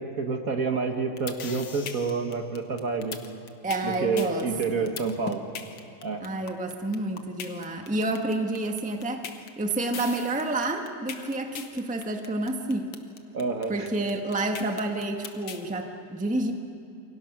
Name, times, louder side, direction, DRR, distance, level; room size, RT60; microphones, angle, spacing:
voice 1, 0.0-3.2 3.8-5.4 6.0-6.2 13.3-13.9, right 4 dB, 45° right, 4 dB, 1.6 m, -28 dB
sound 1, 0.9-15.6, left 7 dB, 70° left, 2.0 m, -39 dB
voice 2, 3.6-4.5 4.7-4.9 6.2-12.9 13.7-16.5, right 2 dB, 5° right, 3 dB, 1.1 m, -29 dB
28.5 x 23.0 x 6.0 m, 2.8 s
omnidirectional pair, 2.3 m